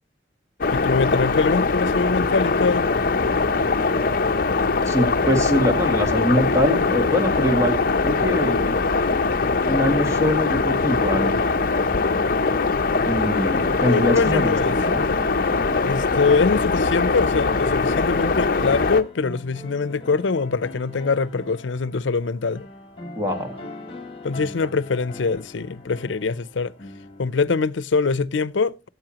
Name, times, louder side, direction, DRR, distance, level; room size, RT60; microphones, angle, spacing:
sound 1, 0.6-19.0, left 4 dB, 50° left, 0.7 m, -22 dB
voice 1, 0.7-2.9 13.8-14.8 15.8-22.7 24.2-26.7 27.2-28.9, left 4 dB, 90° left, 0.6 m, -23 dB
voice 2, 4.9-7.8 8.0-8.7 9.7-11.4 13.0-15.0 23.2-23.6, left 1 dB, 15° right, 2.1 m, -23 dB
sound 2, 13.1-27.6, left 2 dB, 30° left, 2.6 m, -40 dB
16.5 x 8.1 x 2.9 m
head